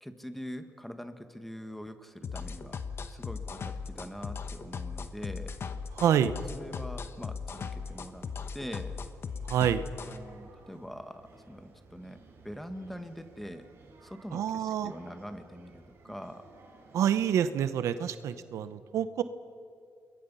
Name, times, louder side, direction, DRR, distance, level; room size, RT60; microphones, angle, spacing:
voice 1, 0.0-2.8 3.1-5.5 6.5-8.3 8.5-9.0 10.1-13.7 14.0-16.5, equal, 5° left, 8 dB, 1.7 m, -43 dB
sound 1, 2.2-10.2, left 5 dB, 55° left, 1.2 m, -38 dB
sound 2, 5.6-17.5, right 4 dB, 65° right, 5.7 m, -58 dB
voice 2, 6.0-6.3 9.4-9.8 14.3-14.9 16.9-19.2, right 9 dB, 85° right, 13 dB, 0.9 m, -27 dB
29.0 x 21.5 x 5.6 m, 2.3 s
cardioid pair, 85°, 5 cm